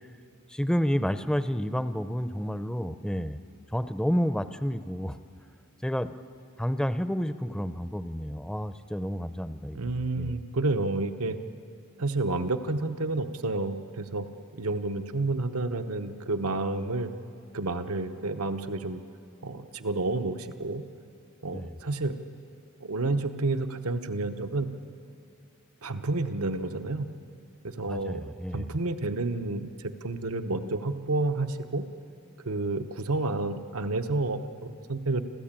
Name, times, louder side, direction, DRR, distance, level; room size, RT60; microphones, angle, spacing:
voice 1, 0.5-3.4 3.7-5.2 5.8-6.1 6.6-10.4 21.5-21.7 27.9-28.8, equal, 5° left, 12 dB, 0.6 m, -30 dB
voice 2, 9.7-11.4 12.0-14.3 14.6-17.1 17.5-19.0 19.4-20.8 21.4-22.2 22.8-24.7 25.8-27.0 27.6-28.2 28.5-31.8 32.4-35.2, right 2 dB, 75° right, 9 dB, 1.0 m, -30 dB
27.5 x 14.5 x 8.9 m, 2.5 s
head